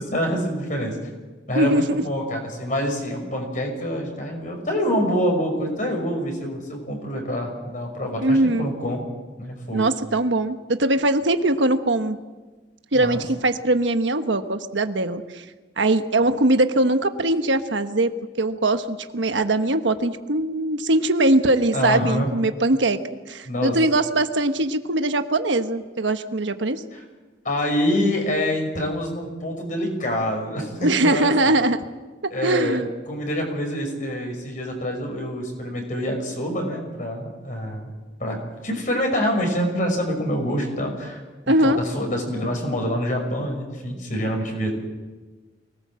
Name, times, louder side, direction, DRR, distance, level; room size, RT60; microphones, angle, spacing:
voice 1, 0.1-1.0 1.5-9.0 9.4-9.9 12.9-13.2 21.7-22.3 23.5-23.8 26.9-27.0 27.4-31.5 32.3-37.9 38.2-41.2 41.5-44.7, equal, 45° left, 2 dB, 5.9 m, -26 dB
voice 2, 1.5-2.0 8.2-8.7 9.7-12.2 12.9-15.4 15.8-18.1 18.4-23.0 23.3-26.8 30.8-31.8 32.2-32.9 41.5-41.8, right 2 dB, 85° right, 8 dB, 1.2 m, -21 dB
24.0 x 18.5 x 7.6 m, 1.3 s
head